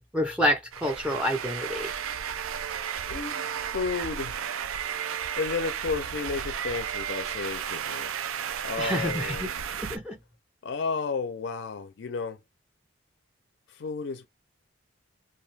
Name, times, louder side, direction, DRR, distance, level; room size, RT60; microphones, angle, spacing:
voice 1, 0.0-1.9 8.8-9.5 9.8-10.2, left 1 dB, 5° right, 0.4 m, -28 dB
sound 1, 0.7-10.0, right 8 dB, 90° right, 0.4 m, -33 dB
voice 2, 3.1-4.5 5.4-8.2 8.6-9.7 10.6-12.4 13.7-14.3, left 4 dB, 60° left, 0.4 m, -32 dB
2.6 x 2.3 x 3.2 m
head